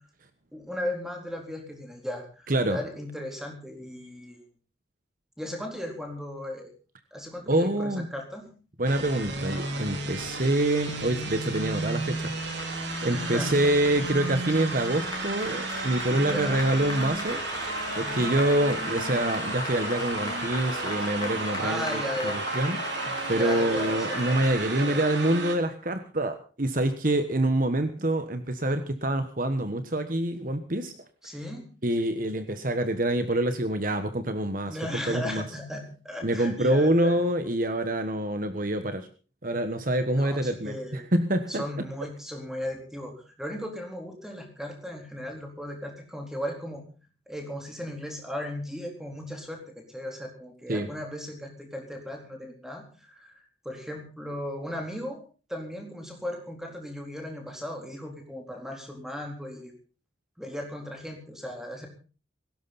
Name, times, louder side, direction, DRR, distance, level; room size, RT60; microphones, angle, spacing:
voice 1, 0.5-4.4 5.4-6.7 7.1-8.5 13.0-13.7 16.1-16.7 18.0-18.4 21.6-22.4 23.2-24.2 24.7-25.0 31.2-31.7 34.7-37.3 40.1-41.0 41.5-46.8 47.3-55.2 55.5-59.7 60.4-61.9, left 1 dB, 5° right, 2 dB, 4.0 m, -36 dB
voice 2, 2.5-2.8 7.5-8.1 8.8-17.4 17.9-30.9 31.8-34.8 35.1-35.4 36.2-39.1 39.4-41.6 50.7-50.9, right 1 dB, 45° right, 9 dB, 1.3 m, -26 dB
sound 1, 8.8-25.5, right 3 dB, 65° right, 3.2 m, -33 dB
Applause, 9.2-24.5, left 3 dB, 20° left, 4.4 m, -39 dB
18.5 x 16.5 x 4.2 m, 0.37 s
head